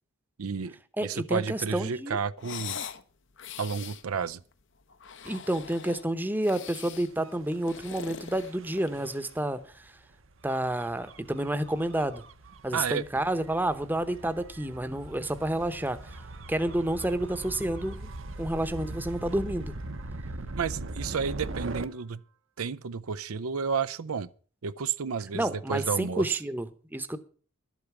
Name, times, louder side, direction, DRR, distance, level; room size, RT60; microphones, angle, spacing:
voice 1, 0.4-2.8 3.6-4.4 12.7-13.2 20.6-22.2 22.6-24.3 24.6-26.4, right 6 dB, 90° right, 0.6 m, -31 dB
voice 2, 1.0-2.2 5.2-9.9 10.4-12.2 12.6-16.2 16.5-18.1 18.4-19.7 25.3-27.2, right 1 dB, 10° right, 0.8 m, -30 dB
sound 1, 2.4-3.0 3.4-4.0 4.9-6.1 6.4-7.1 7.5-9.0, left 7 dB, 60° left, 0.9 m, -41 dB
Gull seagull / Waves surf / Siren, 7.1-21.9, right 2 dB, 65° right, 0.9 m, -41 dB
12.0 x 8.3 x 7.1 m
head